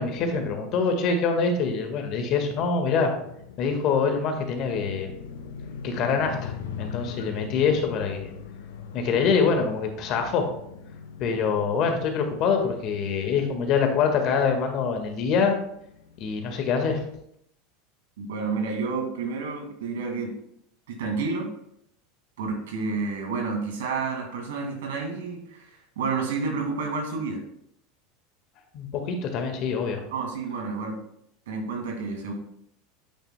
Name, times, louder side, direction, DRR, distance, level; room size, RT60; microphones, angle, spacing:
voice 1, 0.0-3.1 3.6-5.1 5.8-8.3 8.9-10.5 11.2-15.5 16.2-17.0 28.7-30.0, left 5 dB, 50° left, 4 dB, 1.6 m, -25 dB
sound 1, 3.2-16.6, left 6 dB, 75° left, 0.9 m, -41 dB
voice 2, 18.2-20.3 20.9-21.5 22.4-25.7 26.0-27.4 30.1-31.0 31.5-32.3, right 4 dB, 75° right, 2 dB, 2.1 m, -30 dB
9.1 x 8.7 x 2.2 m, 0.74 s
hypercardioid pair, 90°, 0 cm